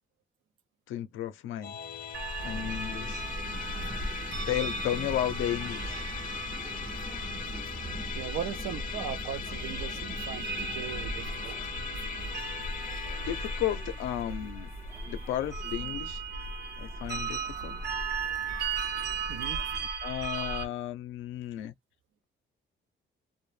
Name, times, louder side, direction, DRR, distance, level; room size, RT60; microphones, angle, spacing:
voice 1, 0.9-1.8 2.4-3.2 4.5-6.0 13.3-14.7 15.1-16.2 16.8-17.8 20.0-21.7, left 12 dB, 85° left, 0.5 m, -33 dB
Musical instrument, 1.6-17.1, left 6 dB, 40° left, 0.6 m, -40 dB
sound 1, 2.1-20.7, right 3 dB, 55° right, 0.9 m, -36 dB
sound 2, 2.4-19.9, right 1 dB, 15° right, 0.4 m, -46 dB
voice 2, 8.1-11.6 19.3-19.7, right 9 dB, 80° right, 0.5 m, -38 dB
2.1 x 2.0 x 3.0 m
cardioid pair, 90°, 20 cm